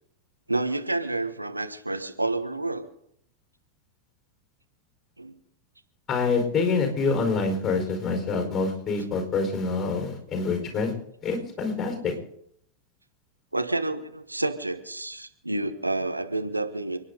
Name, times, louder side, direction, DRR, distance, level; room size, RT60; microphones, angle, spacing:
voice 1, 0.5-2.9 5.2-5.3 13.5-17.0, right 2 dB, 85° right, 7 dB, 1.3 m, -29 dB
voice 2, 6.1-10.9 11.2-12.1, left 4 dB, 20° left, 3 dB, 4.8 m, -26 dB
29.5 x 10.0 x 3.9 m, 0.71 s
figure-of-eight pair, 90°, 0 cm